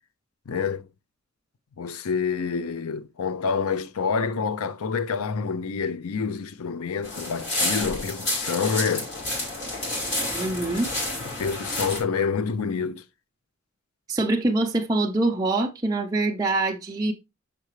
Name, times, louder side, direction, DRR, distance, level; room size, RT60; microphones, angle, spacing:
voice 1, 0.5-0.9 1.8-9.1 11.4-13.0, left 5 dB, 85° left, 0.5 m, -27 dB
sound 1, 7.0-12.0, left 1 dB, 55° left, 4.3 m, -29 dB
voice 2, 10.3-10.9 14.1-17.1, right 2 dB, 15° right, 0.6 m, -24 dB
6.7 x 5.7 x 3.1 m
head